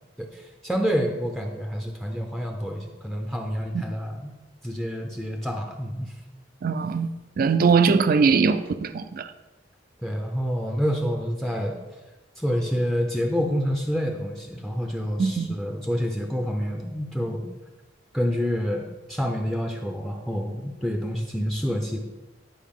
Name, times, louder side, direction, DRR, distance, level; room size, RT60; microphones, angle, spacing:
voice 1, 0.2-4.3 4.6-6.1 10.0-11.8 12.4-17.5 18.1-22.0, equal, ahead, 2 dB, 0.5 m, -28 dB
voice 2, 6.6-7.1 7.4-9.3 15.2-15.5, right 5 dB, 50° right, 11 dB, 0.4 m, -21 dB
10.5 x 4.7 x 3.6 m, 1.1 s
head